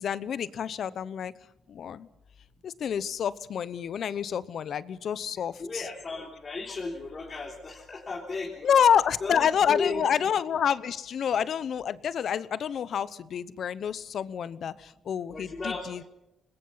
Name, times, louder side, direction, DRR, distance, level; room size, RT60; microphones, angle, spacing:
voice 1, 0.0-1.3 1.7-2.1 2.6-5.9 8.6-16.0, left 8 dB, 60° left, 17 dB, 0.9 m, -28 dB
voice 2, 5.6-8.7 9.2-10.0 15.3-16.0, left 3 dB, 35° left, -1 dB, 3.4 m, -34 dB
26.0 x 20.5 x 5.7 m, 0.90 s
cardioid pair, 90°, 0 cm